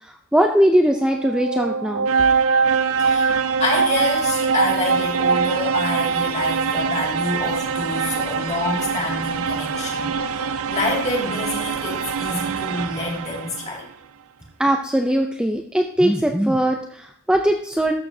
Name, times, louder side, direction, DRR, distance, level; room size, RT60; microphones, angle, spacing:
voice 1, 0.0-2.1 14.6-17.9, right 1 dB, 5° right, 4 dB, 0.4 m, -20 dB
sound 1, 0.9-13.7, right 5 dB, 65° right, 0.5 m, -23 dB
voice 2, 3.0-13.9, left 2 dB, 30° left, -2 dB, 2.2 m, -27 dB
13.0 x 6.8 x 2.7 m, 0.65 s
head